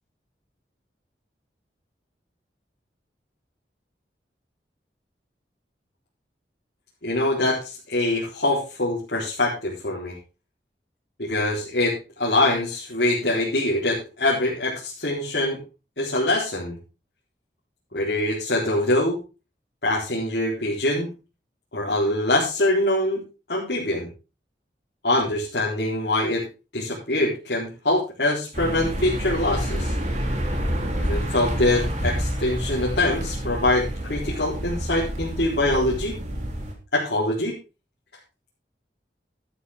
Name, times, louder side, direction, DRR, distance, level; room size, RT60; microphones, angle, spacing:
voice 1, 7.0-10.2 11.2-15.6 16.0-16.8 17.9-19.2 19.8-21.1 21.7-23.2 23.5-24.1 25.0-26.4 26.7-29.9 31.0-36.1 36.9-37.6, left 1 dB, 70° left, -6 dB, 4.0 m, -24 dB
sound 1, 28.5-36.7, equal, 40° right, 3.2 m, -28 dB
12.0 x 11.5 x 3.6 m, 0.30 s
head